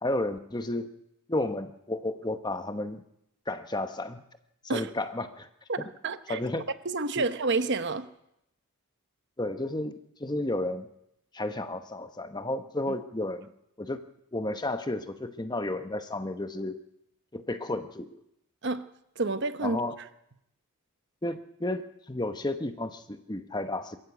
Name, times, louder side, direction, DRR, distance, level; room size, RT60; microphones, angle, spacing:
voice 1, 0.0-0.9 1.3-3.0 3.5-4.2 4.6-5.5 5.8-5.9 6.3-6.6 9.4-10.9 11.3-13.5 13.8-14.0 14.3-16.8 17.3-18.2 19.6-20.0 21.2-24.0, left 1 dB, 20° left, 9 dB, 0.9 m, -32 dB
voice 2, 6.0-6.4 6.8-8.1 18.6-18.8 19.2-19.8, right 3 dB, 50° right, 11 dB, 1.0 m, -29 dB
22.0 x 14.5 x 8.2 m, 0.80 s
head